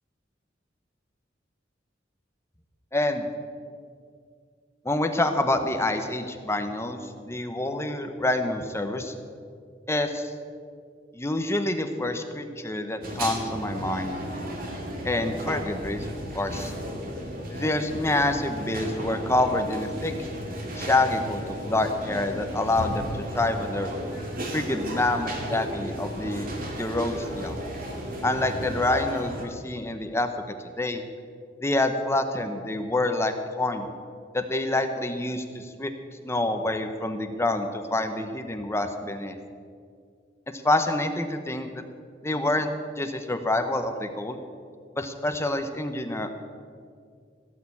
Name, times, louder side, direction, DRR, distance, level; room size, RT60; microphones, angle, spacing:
voice 1, 2.9-3.3 4.8-7.0 7.3-9.1 9.9-10.3 11.1-14.2 15.0-16.1 16.3-16.7 17.5-20.1 20.8-23.9 24.5-26.5 26.7-27.5 28.2-30.3 30.8-31.0 31.6-33.9 34.3-35.9 36.2-39.3 40.6-41.8 42.2-42.7 43.0-44.4 45.0-46.3, left 2 dB, 15° left, 7 dB, 1.0 m, -27 dB
sound 1, 13.0-29.4, equal, 50° right, 2.3 m, -34 dB
17.0 x 6.8 x 8.5 m, 2.2 s
head